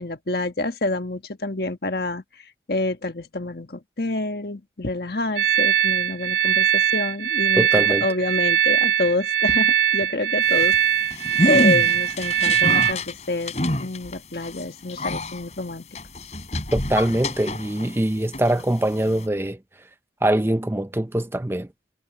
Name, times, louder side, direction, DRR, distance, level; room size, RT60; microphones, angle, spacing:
voice 1, 0.0-2.2 2.7-13.5 13.8-15.9, left 2 dB, 60° left, 1.5 m, -28 dB
sound 1, 5.4-12.9, right 9 dB, 80° right, 1.5 m, -21 dB
voice 2, 7.6-8.0 16.7-19.6 20.2-21.7, right 1 dB, 15° right, 0.5 m, -23 dB
sound 2, 10.4-18.0 18.3-19.3, left 1 dB, 40° left, 4.7 m, -28 dB
head